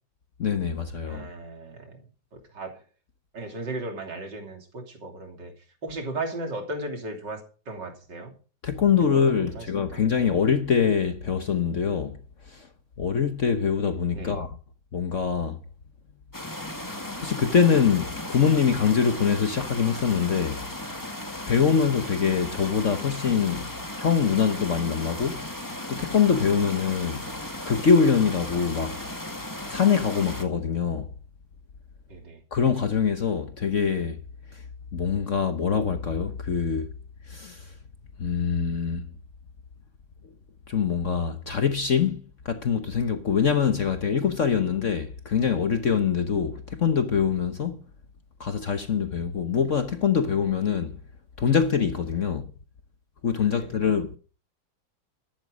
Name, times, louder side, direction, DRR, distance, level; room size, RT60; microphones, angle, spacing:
voice 1, 0.4-1.3 8.6-12.2 12.4-12.7 13.0-14.6 14.9-15.6 17.2-20.6 21.5-23.7 24.0-25.5 25.9-27.3 27.6-29.0 29.7-31.1 32.5-34.2 34.5-34.6 34.9-36.9 37.3-37.7 38.2-39.1 40.7-47.8 48.4-51.0 51.4-52.5 53.2-54.2, left 6 dB, 50° left, 1.1 m, -24 dB
voice 2, 1.1-2.0 2.3-2.8 3.3-5.5 5.8-7.4 7.7-8.3 9.1-10.0 14.1-14.5 21.6-21.7 32.1-32.4 53.5-53.8, right 2 dB, 65° right, 3.6 m, -36 dB
sound 1, 16.3-30.4, left 1 dB, 10° left, 1.9 m, -36 dB
13.5 x 11.5 x 5.2 m
omnidirectional pair, 2.1 m